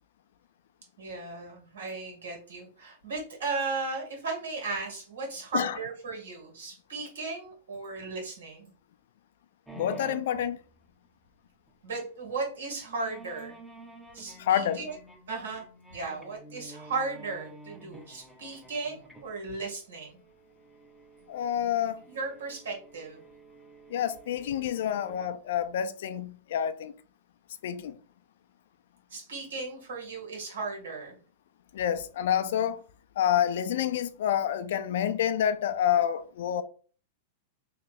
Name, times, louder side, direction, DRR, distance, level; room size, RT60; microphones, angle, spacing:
voice 1, 1.0-8.7 11.8-13.6 14.1-14.9 15.3-15.6 15.9-20.2 22.1-23.2 29.1-31.2, right 3 dB, 85° right, 2.2 m, -36 dB
voice 2, 9.7-10.6 14.4-14.8 21.3-22.0 23.9-26.9 27.6-28.0 31.7-32.8 33.2-36.6, left 10 dB, 70° left, 0.5 m, -28 dB
sound 1, 9.7-11.2 11.7-11.8 12.0-12.1 12.8-25.5, right 3 dB, ahead, 0.8 m, -51 dB
3.2 x 2.9 x 4.3 m
hypercardioid pair, 130°, 0 cm